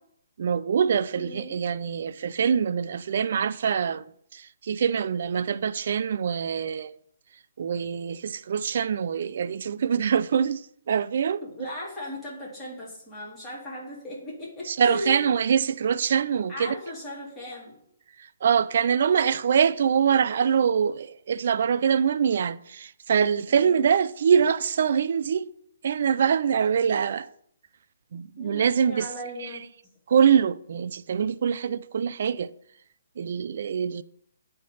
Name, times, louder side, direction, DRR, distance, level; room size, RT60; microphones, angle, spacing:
voice 1, 0.4-4.1 4.3-6.9 7.6-10.6 10.9-11.7 14.7-16.8 18.4-25.5 25.8-27.3 28.1-29.1 29.4-29.5 30.1-32.5 33.2-34.0, right 7 dB, 55° right, 0.3 m, -24 dB
voice 2, 1.2-1.6 11.4-15.2 16.5-17.8 23.5-23.7 28.4-29.6, left 1 dB, 10° left, 2.1 m, -37 dB
9.2 x 3.3 x 5.5 m
hypercardioid pair, 165°, 0 cm